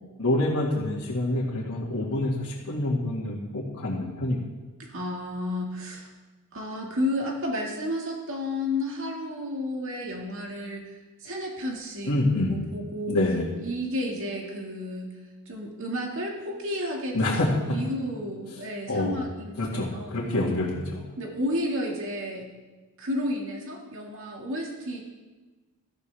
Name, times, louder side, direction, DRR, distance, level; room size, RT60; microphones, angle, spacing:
voice 1, 0.2-4.4 12.1-12.5 13.1-13.5 17.1-17.5 18.9-19.2 19.6-21.0, left 1 dB, 70° left, -7 dB, 2.1 m, -26 dB
voice 2, 4.8-6.1 6.5-12.2 12.5-13.2 13.6-15.2 15.5-20.2 21.2-22.5 23.0-25.0, left 1 dB, 65° right, 0 dB, 2.0 m, -32 dB
16.0 x 13.5 x 3.4 m, 1.2 s
head